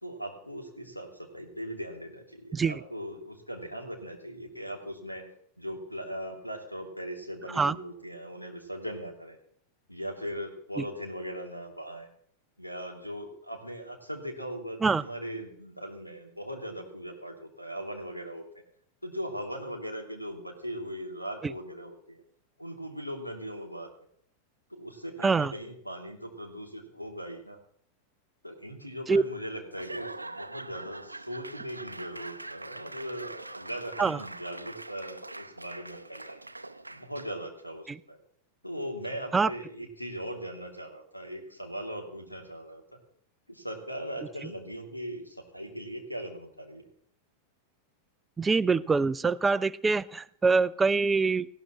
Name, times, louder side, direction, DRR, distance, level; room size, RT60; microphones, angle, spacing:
voice 1, 0.0-5.2 5.6-9.4 9.9-12.1 12.6-18.4 19.0-22.2 22.6-23.9 24.7-27.6 28.4-36.4 36.9-38.2 38.6-43.0 43.5-46.9, equal, 90° left, 3 dB, 2.5 m, -39 dB
Laughter / Applause / Crowd, 29.7-37.5, right 2 dB, 85° right, 0.6 m, -43 dB
voice 2, 48.4-51.5, right 4 dB, 15° right, 17 dB, 0.4 m, -24 dB
18.5 x 16.0 x 3.0 m, 0.62 s
figure-of-eight pair, 90°, 0 cm